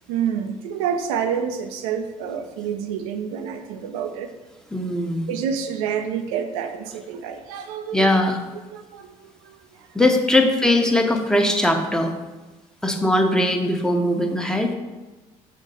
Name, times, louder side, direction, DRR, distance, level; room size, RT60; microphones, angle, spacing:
voice 1, 0.1-4.3 5.3-8.1 8.7-9.9, right 7 dB, 80° right, 7 dB, 0.7 m, -28 dB
voice 2, 4.7-5.3 7.9-8.4 9.9-12.1 12.8-14.7, left 1 dB, 5° left, 3 dB, 1.2 m, -20 dB
6.4 x 4.0 x 5.4 m, 1.2 s
hypercardioid pair, 55°, 18 cm